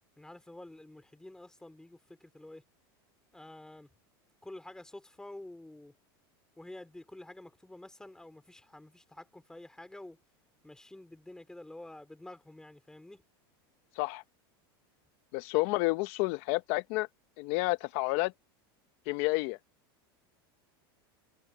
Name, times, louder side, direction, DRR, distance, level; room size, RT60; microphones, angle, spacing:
voice 1, 0.2-2.6 3.3-3.9 4.4-5.9 6.6-10.2 10.6-13.2, left 1 dB, 5° left, 4.0 m, -49 dB
voice 2, 15.3-17.1 17.4-18.3 19.1-19.6, left 22 dB, 55° left, 0.8 m, -30 dB
supercardioid pair, 125°, 13 cm